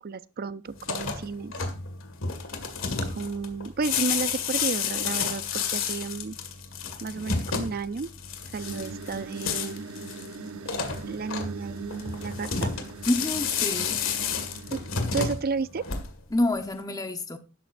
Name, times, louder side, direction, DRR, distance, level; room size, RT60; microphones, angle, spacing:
voice 1, 0.0-1.5 3.1-6.4 7.0-8.1 8.5-9.8 11.0-12.7 14.7-14.8 15.1-15.9, right 4 dB, 45° right, 0.5 m, -32 dB
sound 1, 0.7-16.4, left 6 dB, 70° left, 2.0 m, -31 dB
sound 2, 8.6-15.2, right 4 dB, 85° right, 0.8 m, -41 dB
voice 2, 13.1-14.1 16.3-17.4, left 1 dB, 15° left, 1.1 m, -27 dB
13.0 x 11.0 x 2.6 m
head